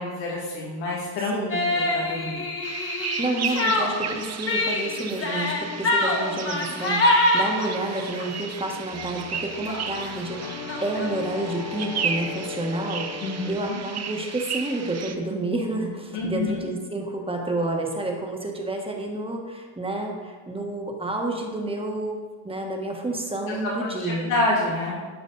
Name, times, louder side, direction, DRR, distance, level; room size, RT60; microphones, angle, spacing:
voice 1, 0.0-2.4 13.2-13.8 16.1-16.7 23.5-23.6 23.8-25.0, left 2 dB, 90° left, -4 dB, 2.2 m, -28 dB
voice 2, 1.3-1.7 3.2-22.2 22.4-24.3, right 2 dB, 10° right, 1 dB, 1.3 m, -29 dB
sound 1, 1.5-8.3 8.8-9.1 9.3-9.4 9.7-11.1, left 2 dB, 25° left, 1.3 m, -25 dB
sound 2, 2.6-15.2, right 6 dB, 35° right, 0.7 m, -34 dB
sound 3, 7.3-13.5, left 8 dB, 60° left, 0.7 m, -39 dB
11.5 x 5.1 x 4.0 m, 1.4 s
cardioid pair, 105°, 49 cm